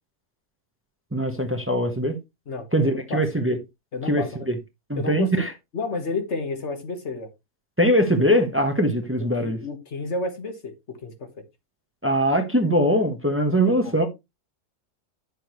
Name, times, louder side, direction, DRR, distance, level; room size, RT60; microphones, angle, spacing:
voice 1, 1.1-2.2 2.7-3.6 4.1-4.6 4.9-5.5 7.8-9.6 12.0-14.1, equal, 10° right, 1.1 m, -21 dB
voice 2, 2.5-3.2 3.9-4.5 5.0-5.5 5.7-7.3 9.4-11.4 13.7-13.9, left 3 dB, 65° left, 1.6 m, -31 dB
9.9 x 6.8 x 3.0 m
omnidirectional pair, 1.3 m